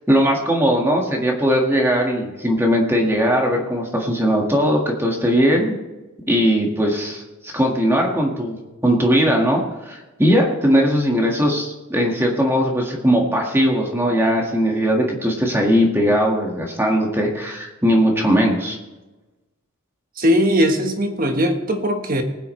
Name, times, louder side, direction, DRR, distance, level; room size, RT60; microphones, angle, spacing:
voice 1, 0.1-5.7 6.3-8.6 8.8-18.8, equal, 10° right, 0 dB, 1.7 m, -19 dB
voice 2, 20.2-22.2, equal, 40° right, 5 dB, 1.3 m, -19 dB
20.0 x 9.7 x 3.2 m, 1.1 s
head